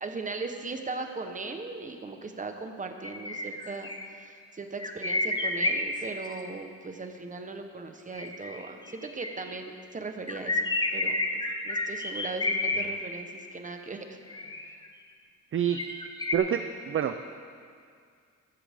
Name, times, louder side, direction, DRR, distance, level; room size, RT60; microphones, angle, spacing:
voice 1, 0.0-11.2 11.6-14.8, right 3 dB, 25° right, 5 dB, 0.9 m, -38 dB
sound 1, 3.0-4.1 4.8-6.3 8.1-9.5 10.3-12.8 14.3-14.9 15.7-16.3, left 2 dB, 15° left, 0.7 m, -30 dB
voice 2, 16.3-17.2, right 9 dB, 45° right, 8 dB, 0.4 m, -27 dB
14.5 x 13.5 x 3.5 m, 2.2 s
wide cardioid pair, 160°, 31 cm